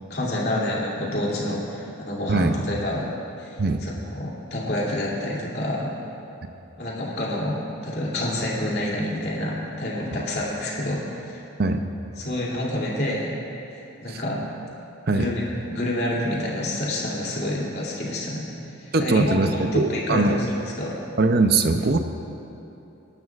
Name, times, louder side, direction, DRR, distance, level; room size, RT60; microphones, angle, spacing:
voice 1, 0.1-3.1 3.4-5.9 6.8-11.4 12.2-13.4 13.7-14.4 15.1-18.4 18.8-20.4 20.8-20.9, left 1 dB, 50° left, -5 dB, 2.8 m, -28 dB
voice 2, 18.9-20.4 21.2-22.0, right 3 dB, 50° right, 7 dB, 0.6 m, -21 dB
25.5 x 12.0 x 2.5 m, 2.8 s
head